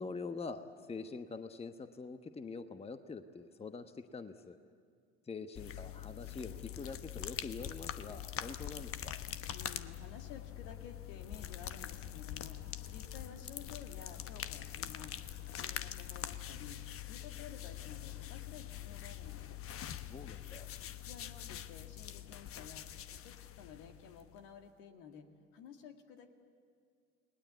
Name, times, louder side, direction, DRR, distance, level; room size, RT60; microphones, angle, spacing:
voice 1, 0.0-4.6 5.3-9.2 20.1-20.7, left 4 dB, 15° left, 9 dB, 1.2 m, -45 dB
sound 1, 5.6-24.5, left 11 dB, 40° left, 1.0 m, -44 dB
voice 2, 9.5-15.1 15.5-16.8 17.0-19.6 21.0-25.3 25.5-26.3, left 7 dB, 65° left, 5 dB, 2.2 m, -53 dB
30.0 x 19.5 x 8.2 m, 2.2 s
figure-of-eight pair, 60°, 35 cm